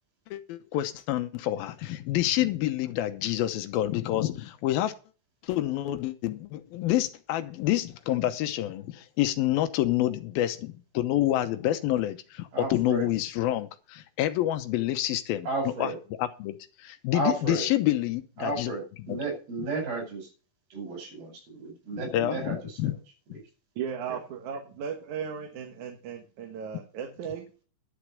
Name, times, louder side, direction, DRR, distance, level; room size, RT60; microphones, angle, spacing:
voice 1, 0.3-5.0 5.4-15.5 15.8-15.9 16.2-16.6 16.8-18.7 19.1-19.2 21.9-23.0 23.3-23.4, left 14 dB, 85° left, 10 dB, 2.8 m, -28 dB
voice 2, 12.5-13.1 15.4-16.0 17.1-17.7 18.4-20.3 20.7-22.6 22.8-22.9 24.1-24.2, right 3 dB, 90° right, 3 dB, 6.9 m, -33 dB
voice 3, 23.8-27.6, right 7 dB, 60° right, 3 dB, 2.5 m, -36 dB
11.5 x 6.6 x 6.5 m, 0.36 s
omnidirectional pair, 4.2 m